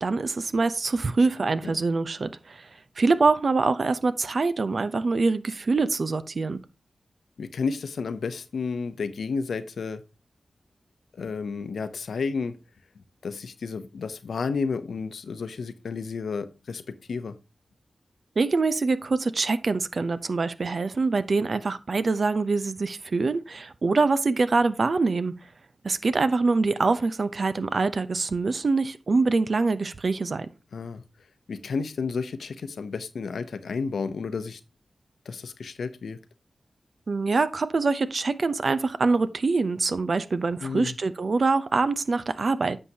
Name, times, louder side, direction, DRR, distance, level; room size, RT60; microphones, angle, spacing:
voice 1, 0.0-2.7 3.0-6.6 18.4-25.3 25.8-30.5 37.1-42.8, right 3 dB, 65° right, 0.6 m, -24 dB
voice 2, 7.4-10.0 11.2-12.5 13.2-16.8 17.1-17.4 30.7-31.0 31.5-34.6 35.3-36.2 40.6-41.0, left 5 dB, 85° left, 0.7 m, -31 dB
9.8 x 6.6 x 2.8 m
cardioid pair, 50°, 0 cm